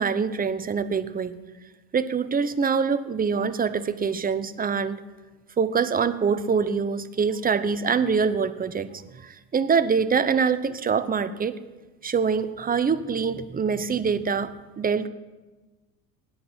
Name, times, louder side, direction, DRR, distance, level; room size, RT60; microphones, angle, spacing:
voice 1, 0.0-1.4 1.9-5.0 5.6-11.6 12.0-15.1, right 6 dB, 20° right, 13 dB, 0.8 m, -25 dB
17.5 x 10.5 x 4.4 m, 1.2 s
hypercardioid pair, 80°, 42 cm